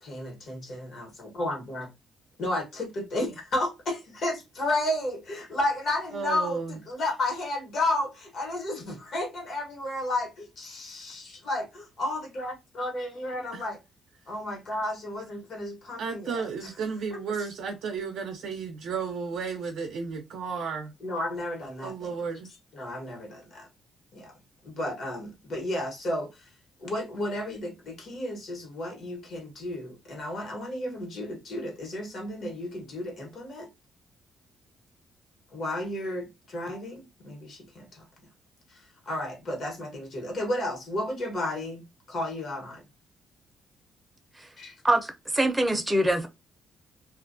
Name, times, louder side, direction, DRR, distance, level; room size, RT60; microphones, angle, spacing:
voice 1, 0.0-1.9 2.4-13.8 14.3-16.7 17.1-17.2 21.0-22.2 22.7-23.7 24.1-24.3 24.6-26.5 26.8-33.7 35.5-38.1 38.7-42.8 44.6-44.7, left 1 dB, 60° left, 1.1 m, -32 dB
voice 2, 6.1-6.8 13.5-13.7 16.0-20.9 21.8-22.5, right 5 dB, 75° right, 0.5 m, -33 dB
voice 3, 44.8-46.3, right 1 dB, 10° right, 0.6 m, -24 dB
2.4 x 2.1 x 2.5 m
cardioid pair, 90°, 0 cm